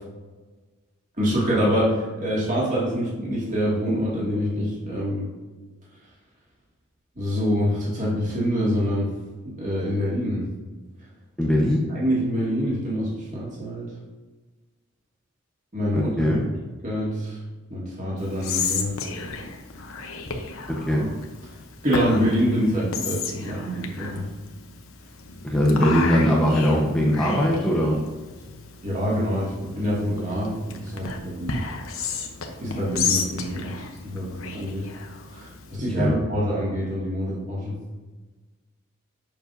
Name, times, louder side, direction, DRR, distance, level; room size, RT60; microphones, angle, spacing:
voice 1, 1.2-5.3 7.2-9.1 9.4-10.5 11.9-13.9 15.7-16.4 16.8-17.4 17.7-19.0 21.8-24.3 28.8-31.6 32.6-33.8 34.1-34.9 35.3-37.8, equal, 35° right, -6 dB, 2.0 m, -25 dB
voice 2, 11.4-11.9 16.0-16.5 20.7-21.1 25.4-28.0 36.0-36.2, equal, 5° left, -4 dB, 0.9 m, -21 dB
Whispering, 18.2-35.8, left 5 dB, 80° left, 0.9 m, -33 dB
7.4 x 6.1 x 2.6 m, 1.3 s
head